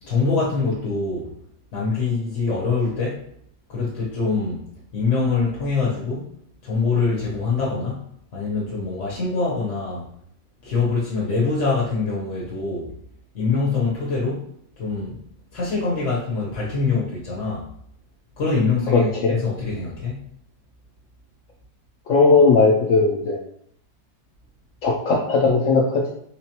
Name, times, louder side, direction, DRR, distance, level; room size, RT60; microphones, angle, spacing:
voice 1, 0.0-1.3 1.7-3.3 3.7-4.6 4.9-6.3 6.6-10.1 10.6-12.9 13.3-14.5 14.8-15.2 15.5-17.7 18.4-20.3, left 4 dB, 50° left, -5 dB, 1.0 m, -24 dB
voice 2, 18.9-19.4 22.1-23.4 24.8-26.1, left 3 dB, 75° left, -1 dB, 0.7 m, -17 dB
3.7 x 3.0 x 2.9 m, 0.68 s
omnidirectional pair, 1.9 m